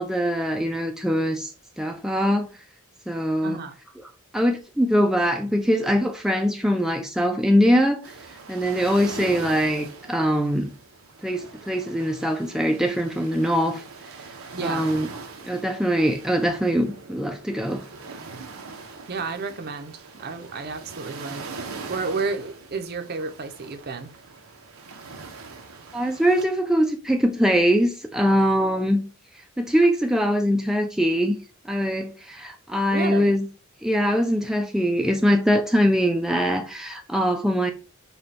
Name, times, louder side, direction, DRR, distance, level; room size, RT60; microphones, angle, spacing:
voice 1, 0.0-2.5 3.1-3.6 4.3-8.1 8.5-10.7 11.2-13.8 14.6-15.1 15.4-17.8 25.9-29.0 29.6-31.4 31.7-33.5 33.8-37.7, equal, ahead, 0.3 m, -22 dB
voice 2, 3.4-3.8 14.5-14.9 19.1-21.5 21.9-24.1 32.9-33.3, right 4 dB, 50° right, 0.6 m, -31 dB
sound 1, 8.0-26.5, right 4 dB, 90° right, 0.7 m, -41 dB
5.0 x 2.2 x 2.8 m
head